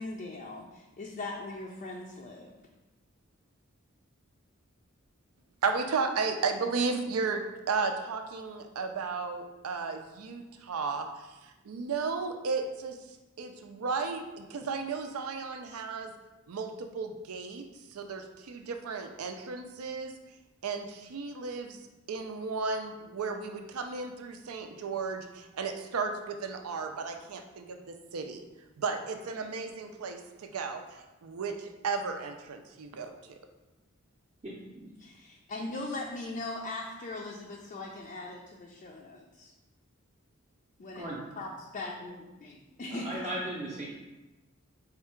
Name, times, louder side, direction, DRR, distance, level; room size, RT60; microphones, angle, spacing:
voice 1, 0.0-2.6 35.0-39.5 40.8-41.0 41.4-43.3, left 2 dB, 40° left, -1 dB, 0.4 m, -40 dB
voice 2, 5.6-16.1 16.5-17.6 17.9-20.1 20.6-21.8 22.1-28.4 28.8-33.4, right 4 dB, 90° right, 6 dB, 0.5 m, -34 dB
voice 3, 34.4-34.9 40.9-41.2 42.9-43.9, right 1 dB, 30° right, -6 dB, 0.6 m, -37 dB
4.4 x 2.4 x 4.3 m, 1.1 s
head